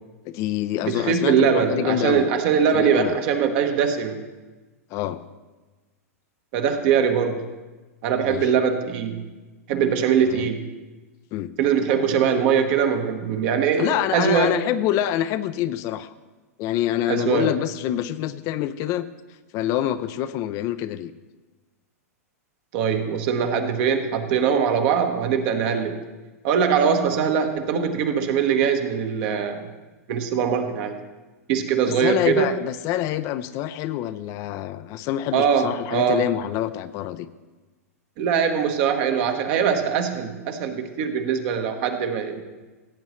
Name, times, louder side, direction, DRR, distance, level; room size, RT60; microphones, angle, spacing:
voice 1, 0.3-2.3 2.7-3.2 4.9-5.2 8.2-8.5 10.2-10.5 11.3-11.5 13.8-16.1 16.6-19.1 19.5-21.1 32.0-37.3, left 12 dB, 40° left, 12 dB, 0.5 m, -26 dB
voice 2, 0.9-4.2 6.5-7.4 8.0-9.2 9.7-10.6 11.6-14.6 17.1-17.5 22.7-26.0 26.4-29.7 30.1-30.9 31.5-32.5 35.3-36.2 38.2-42.4, right 7 dB, 50° right, 6 dB, 1.2 m, -22 dB
16.5 x 8.2 x 3.2 m, 1.2 s
hypercardioid pair, 115°, 8 cm